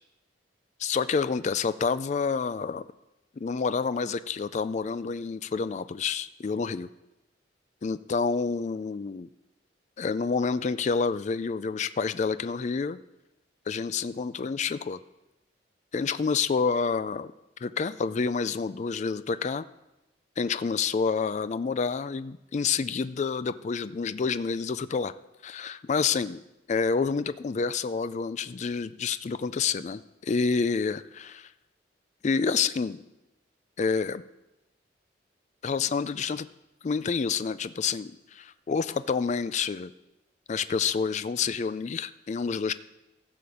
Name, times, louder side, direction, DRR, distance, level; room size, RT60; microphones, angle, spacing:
voice 1, 0.8-2.9 3.4-6.9 7.8-9.3 10.0-13.0 13.7-15.0 15.9-17.3 17.6-19.6 20.4-25.1 25.4-26.4 26.7-31.5 32.2-33.0 33.8-34.2 35.6-36.5 36.8-39.9 40.5-42.7, left 5 dB, 40° left, 14 dB, 0.3 m, -28 dB
15.0 x 5.1 x 7.0 m, 0.94 s
head